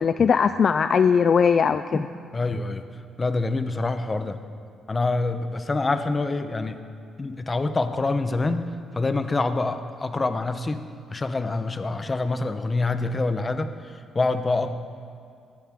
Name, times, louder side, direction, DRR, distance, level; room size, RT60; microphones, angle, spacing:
voice 1, 0.0-2.0, left 6 dB, 50° left, 11 dB, 0.3 m, -19 dB
voice 2, 2.3-2.8 3.2-4.4 4.9-6.8 7.2-10.8 11.1-14.7, left 3 dB, 25° left, 9 dB, 0.8 m, -26 dB
18.0 x 13.5 x 3.7 m, 2.3 s
cardioid pair, 90°, 0 cm